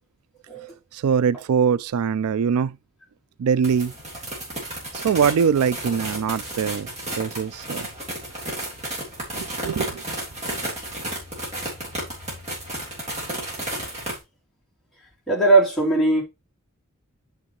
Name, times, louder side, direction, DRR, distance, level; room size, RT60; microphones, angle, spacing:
voice 1, 0.9-2.8 3.4-3.9 4.9-6.9 7.2-7.9 9.3-10.0, right 7 dB, 80° right, 0.4 m, -22 dB
sound 1, 3.6-14.2, right 1 dB, 30° right, 3.6 m, -33 dB
voice 2, 15.3-16.2, right 2 dB, ahead, 3.3 m, -19 dB
8.7 x 6.1 x 3.1 m
head